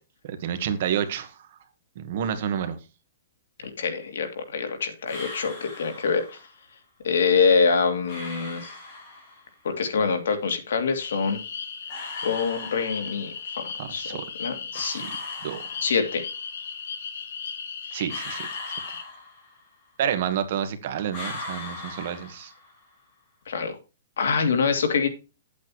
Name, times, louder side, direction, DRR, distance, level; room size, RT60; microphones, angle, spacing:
voice 1, 0.2-1.3 1.9-2.8 13.8-14.2 14.7-15.1 15.4-15.6 17.9-18.8 20.0-22.5, right 9 dB, 40° right, 9 dB, 1.3 m, -29 dB
voice 2, 3.6-6.4 7.0-8.7 9.6-11.4 12.2-13.6 13.9-15.0 15.8-16.2 23.5-23.8 24.2-25.1, left 5 dB, 70° left, 6 dB, 2.6 m, -25 dB
sound 1, 5.1-6.5 8.1-9.6 11.9-13.4 14.7-16.3 18.1-19.8 21.1-22.9, left 2 dB, 20° left, 4.0 m, -40 dB
sound 2, 11.0-19.0, left 6 dB, 55° left, 1.8 m, -36 dB
10.0 x 8.4 x 3.1 m, 0.30 s
hypercardioid pair, 180°, 0 cm